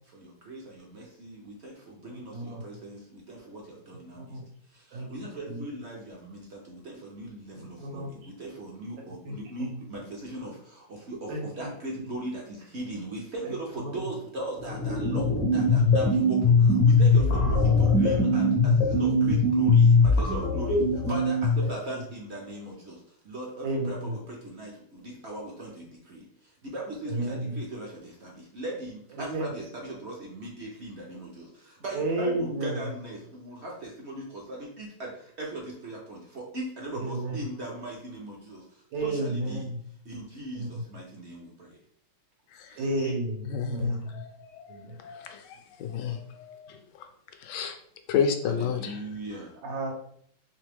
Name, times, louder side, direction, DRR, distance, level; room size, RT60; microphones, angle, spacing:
voice 1, 0.1-4.4 4.7-26.3 26.6-38.6 39.0-39.7 40.0-41.8 42.7-43.1 48.4-49.5, right 1 dB, 55° right, -2 dB, 0.8 m, -39 dB
voice 2, 2.1-2.6 4.1-4.4 4.9-5.6 7.5-8.1 9.2-9.8 11.3-11.5 13.4-13.9 17.2-17.3 20.7-21.1 21.9-22.0 23.6-24.2 27.1-27.6 29.1-29.5 31.9-32.8 37.0-37.4 38.9-39.8 40.6-40.8 42.8-44.2 44.7-45.0 49.6-50.0, right 2 dB, 80° right, 0 dB, 1.6 m, -32 dB
sound 1, 14.6-21.7, left 3 dB, 60° left, 0.7 m, -21 dB
voice 3, 43.5-45.4 45.8-46.8 47.4-47.8 48.1-49.0, left 7 dB, 75° left, 6 dB, 1.1 m, -31 dB
3.5 x 3.3 x 3.4 m, 0.64 s
omnidirectional pair, 2.0 m